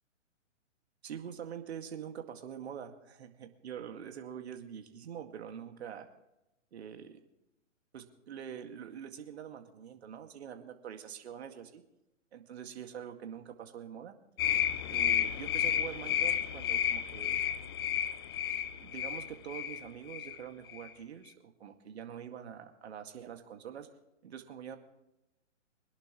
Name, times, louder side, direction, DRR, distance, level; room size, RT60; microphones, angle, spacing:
voice 1, 1.0-6.1 6.7-7.2 7.9-11.8 12.3-14.1 14.9-17.4 18.8-23.9 24.2-24.8, right 8 dB, 55° right, 6 dB, 2.1 m, -45 dB
sound 1, 14.4-19.8 20.1-20.4 20.7-20.9, left 10 dB, 20° left, 0.4 m, -31 dB
24.5 x 11.0 x 3.1 m, 0.89 s
figure-of-eight pair, 130°, 38 cm